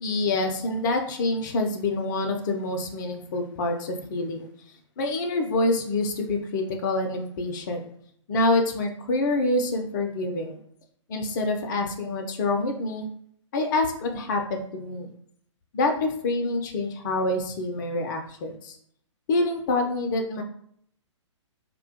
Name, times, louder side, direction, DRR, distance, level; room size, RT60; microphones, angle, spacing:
voice 1, 0.0-4.5 5.0-7.8 8.3-10.6 11.1-13.1 13.5-15.1 15.7-18.8 19.3-20.4, left 2 dB, 40° left, 4 dB, 0.4 m, -26 dB
2.2 x 2.1 x 2.6 m, 0.65 s
figure-of-eight pair, 120°, 16 cm